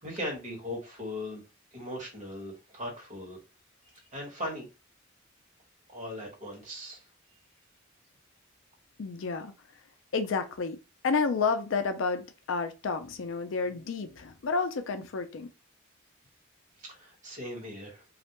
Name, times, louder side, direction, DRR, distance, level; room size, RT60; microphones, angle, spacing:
voice 1, 0.0-1.4 1.7-3.4 3.9-4.7 5.9-7.1 16.8-18.0, left 1 dB, 35° right, 1.1 m, -39 dB
voice 2, 9.0-9.5 10.1-10.8 11.0-15.5, left 4 dB, 70° left, 0.4 m, -30 dB
2.4 x 2.1 x 2.9 m
head